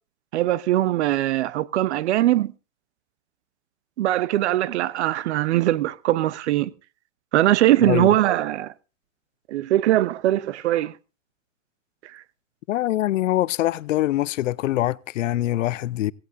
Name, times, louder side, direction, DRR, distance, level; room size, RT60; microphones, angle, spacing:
voice 1, 0.3-2.5 4.0-6.7 7.3-8.7 9.5-10.9, right 14 dB, 55° right, 0.9 m, -21 dB
voice 2, 12.7-16.1, left 14 dB, 65° left, 0.7 m, -23 dB
17.0 x 16.5 x 2.6 m
hypercardioid pair, 150°, 40 cm